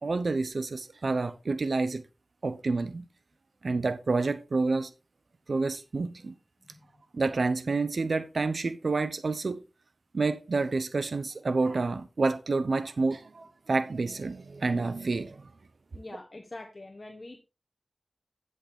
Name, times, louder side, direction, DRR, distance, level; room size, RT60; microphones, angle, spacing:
voice 1, 0.0-2.0 2.4-3.0 3.6-4.9 5.5-6.3 7.1-9.6 10.1-15.5, right 3 dB, 75° right, 0.7 m, -29 dB
voice 2, 15.9-17.4, left 2 dB, 40° left, 1.2 m, -44 dB
10.0 x 6.5 x 3.5 m
wide cardioid pair, 75°, 0 cm